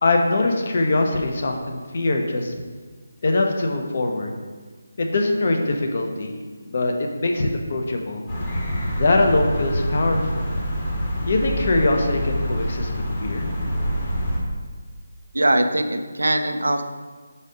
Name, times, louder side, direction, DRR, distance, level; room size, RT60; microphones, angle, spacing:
voice 1, 0.0-2.5 3.2-4.3 5.0-6.4 6.7-8.2 9.0-10.5 11.3-13.5, left 2 dB, 50° left, 2 dB, 0.8 m, -22 dB
sound 1, 8.3-14.4, equal, 30° left, 1.1 m, -26 dB
voice 2, 15.3-16.8, right 1 dB, 85° right, 7 dB, 0.5 m, -21 dB
5.1 x 4.1 x 5.1 m, 1.4 s
figure-of-eight pair, 160°, 0 cm